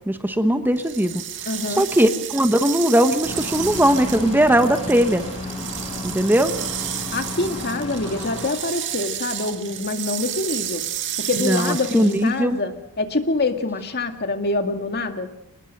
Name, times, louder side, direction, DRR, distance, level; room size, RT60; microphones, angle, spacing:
voice 1, 0.1-1.1 1.8-5.2 6.0-6.5 11.4-12.6, right 1 dB, 10° right, 8 dB, 1.1 m, -19 dB
sound 1, 0.8-12.4, right 11 dB, 55° right, 2.0 m, -32 dB
voice 2, 1.5-1.8 7.1-10.8 11.3-15.3, left 3 dB, 45° left, 6 dB, 2.1 m, -25 dB
sound 2, 3.2-8.5, left 2 dB, 25° left, 6.4 m, -32 dB
26.0 x 20.0 x 6.6 m, 0.78 s
head